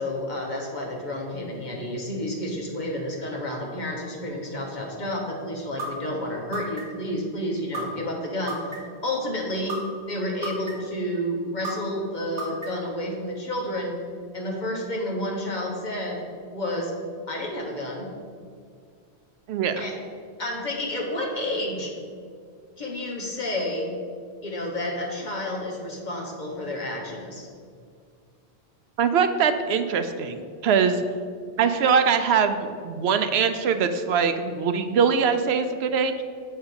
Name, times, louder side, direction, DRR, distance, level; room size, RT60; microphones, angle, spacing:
voice 1, 0.0-8.7 9.0-9.8 10.1-13.9 14.3-16.3 16.5-16.9 17.3-18.1 19.8-19.9 20.4-21.9 22.8-23.9 24.4-27.5, left 1 dB, 45° left, -1 dB, 1.4 m, -30 dB
sound 1, 5.8-5.9 6.5-7.0 7.7-7.8 8.5-9.0 9.7-9.8 10.4-10.9 11.6-11.7 12.4-12.9, right 3 dB, 40° right, 2.5 m, -32 dB
voice 2, 19.5-19.8 29.0-31.0 31.6-36.1, right 6 dB, 75° right, 9 dB, 0.8 m, -22 dB
7.7 x 4.4 x 6.8 m, 2.1 s
omnidirectional pair, 1.1 m